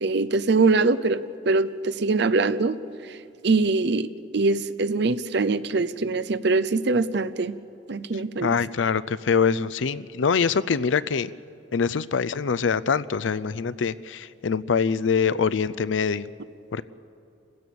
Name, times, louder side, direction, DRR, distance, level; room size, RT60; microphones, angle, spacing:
voice 1, 0.0-2.8 3.1-3.2 3.4-7.6 7.9-8.5, right 3 dB, 65° right, 14 dB, 0.7 m, -23 dB
voice 2, 8.4-11.3 11.7-16.3 16.7-16.8, left 6 dB, 85° left, 17 dB, 0.5 m, -24 dB
28.5 x 16.0 x 6.9 m, 2.6 s
head